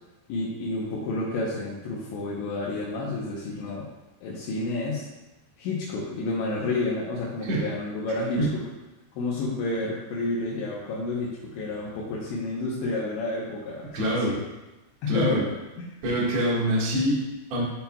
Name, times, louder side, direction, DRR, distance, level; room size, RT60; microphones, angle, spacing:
voice 1, 0.3-3.8 4.2-5.1 5.6-8.4 9.1-14.4 15.0-15.4 15.8-15.9, left 2 dB, 75° left, -6 dB, 3.2 m, -30 dB
voice 2, 13.9-14.3 15.1-15.4 16.0-17.6, right 1 dB, 55° right, -6 dB, 1.9 m, -25 dB
11.0 x 5.7 x 2.3 m, 1.1 s
omnidirectional pair, 5.5 m